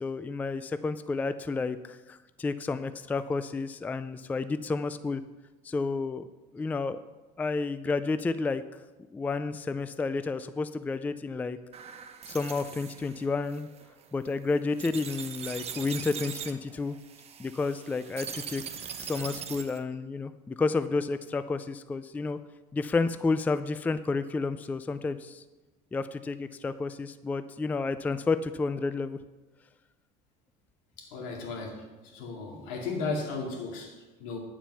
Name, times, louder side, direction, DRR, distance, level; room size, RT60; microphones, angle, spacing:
voice 1, 0.0-5.2 5.6-6.3 6.5-7.0 7.4-8.6 9.1-11.6 12.3-13.7 14.1-17.0 17.4-18.6 19.0-22.4 22.7-25.4 25.9-29.2, left 3 dB, 10° left, 12 dB, 0.3 m, -31 dB
sound 1, 11.7-19.8, right 7 dB, 35° right, 0.9 m, -41 dB
voice 2, 31.0-34.4, left 3 dB, 85° left, 0 dB, 2.4 m, -35 dB
8.9 x 7.3 x 5.6 m, 1.1 s
cardioid pair, 130°, 18 cm